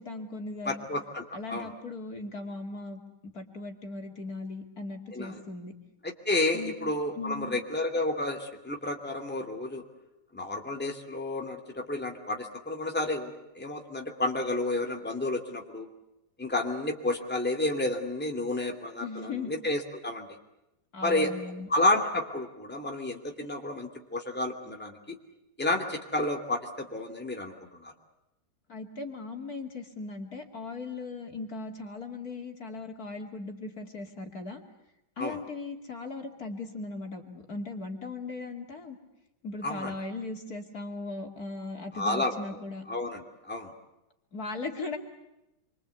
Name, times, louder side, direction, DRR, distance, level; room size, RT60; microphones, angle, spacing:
voice 1, 0.0-0.9 1.3-3.0 3.3-5.7 6.5-6.7 7.1-7.6 19.0-19.5 20.9-21.7 28.7-34.6 35.2-39.0 39.4-42.8 44.3-45.0, left 3 dB, 55° left, 3 dB, 3.1 m, -38 dB
voice 2, 0.6-1.2 1.5-1.7 5.1-5.4 6.0-9.8 10.3-15.9 16.4-20.3 21.0-21.3 21.7-25.2 25.6-27.9 35.2-35.4 39.6-39.9 41.9-42.3 42.9-43.7, left 2 dB, 5° left, 2 dB, 2.6 m, -31 dB
27.5 x 24.5 x 8.4 m, 0.93 s
omnidirectional pair, 1.9 m